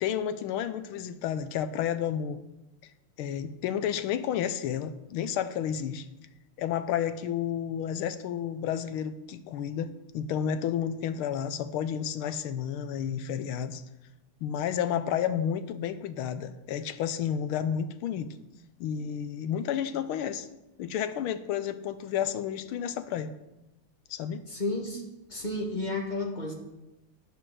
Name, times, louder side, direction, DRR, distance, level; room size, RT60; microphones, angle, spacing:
voice 1, 0.0-2.4 3.2-6.1 6.6-13.8 14.4-18.3 18.8-20.5 20.8-23.3 24.1-24.4, left 9 dB, 90° left, 12 dB, 1.6 m, -31 dB
voice 2, 24.5-25.0 25.3-26.5, left 2 dB, 20° left, 0 dB, 1.8 m, -32 dB
10.0 x 8.5 x 6.3 m, 0.95 s
omnidirectional pair, 2.3 m